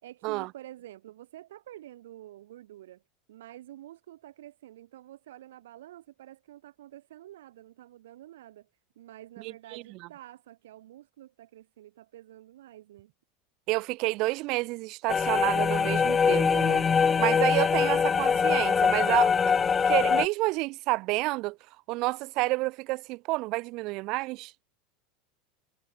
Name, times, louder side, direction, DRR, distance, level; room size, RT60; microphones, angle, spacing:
voice 1, 0.0-3.0 3.3-8.7 9.0-13.1, right 13 dB, 85° right, 4.4 m, -48 dB
voice 2, 9.4-9.8 13.7-16.8 17.2-19.6 19.9-21.6 21.9-24.7, right 22 dB, 55° right, 1.8 m, -29 dB
sound 1, 15.1-20.3, left 6 dB, 25° left, 0.8 m, -23 dB
supercardioid pair, 110°, 0 cm